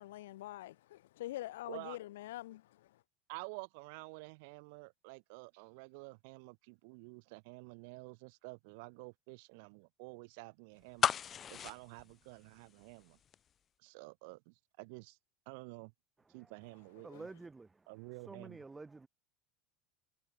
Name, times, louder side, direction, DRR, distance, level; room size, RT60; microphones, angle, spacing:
voice 1, 0.0-3.0 17.0-17.2, left 15 dB, 80° left, 1.7 m, -45 dB
voice 2, 3.3-13.2 13.8-15.2 15.4-15.9 16.3-17.3 17.9-18.6, right 31 dB, 70° right, 1.5 m, -50 dB
sound 1, 11.0-13.0 13.3-13.4, left 8 dB, 35° left, 0.4 m, -34 dB
voice 3, 17.0-19.1, right 3 dB, 15° right, 0.6 m, -51 dB
hypercardioid pair, 95°, 0 cm